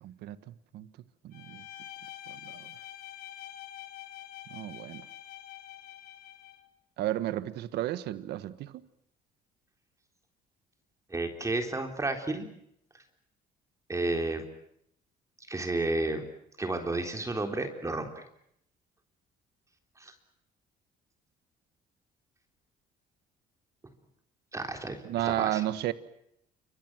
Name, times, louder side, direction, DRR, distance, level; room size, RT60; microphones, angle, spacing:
voice 1, 0.0-0.9 1.2-1.6 2.3-2.7 4.5-5.0 7.0-8.8 25.0-25.9, right 14 dB, 75° right, 1.5 m, -33 dB
Bowed string instrument, 1.3-6.7, left 13 dB, 70° left, 4.0 m, -46 dB
voice 2, 11.1-12.5 12.9-13.0 13.9-14.4 15.5-16.2 16.6-18.2 20.0-20.1 24.5-25.6, right 2 dB, 20° right, 3.7 m, -32 dB
29.0 x 25.0 x 6.3 m
cardioid pair, 110°, 17 cm